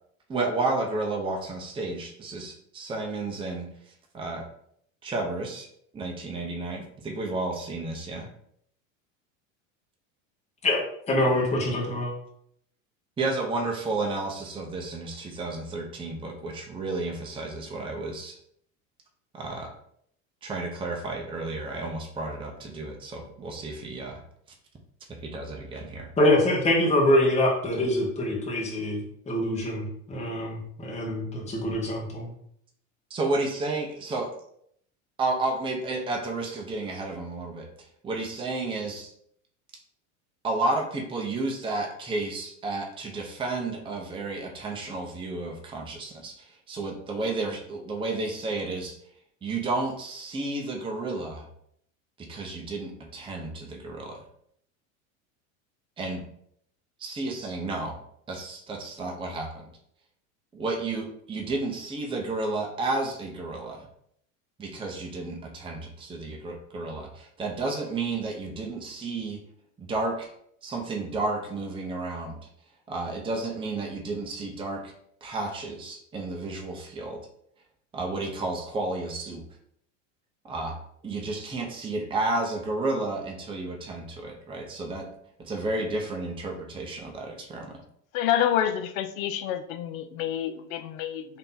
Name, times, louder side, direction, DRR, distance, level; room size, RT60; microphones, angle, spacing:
voice 1, 0.3-3.7 4.1-4.5 5.0-5.7 5.9-8.3 13.2-18.4 19.3-19.7 20.4-24.2 25.1-26.1 33.1-34.4 35.2-37.7 38.0-39.1 40.4-49.0 49.4-51.4 52.2-54.2 56.0-56.2 57.0-58.0 58.3-59.7 60.5-63.9 64.6-69.4 69.8-70.3 70.6-72.4 72.9-74.9 75.2-77.2 77.9-79.4 80.4-80.8 81.0-85.1 85.4-87.8, right 2 dB, 15° right, 1 dB, 0.7 m, -32 dB
voice 2, 11.1-12.1 26.2-32.3, left 1 dB, 15° left, -3 dB, 1.1 m, -25 dB
voice 3, 88.1-91.3, left 10 dB, 75° left, 10 dB, 0.6 m, -28 dB
3.4 x 2.9 x 3.8 m, 0.68 s
supercardioid pair, 105°, 40 cm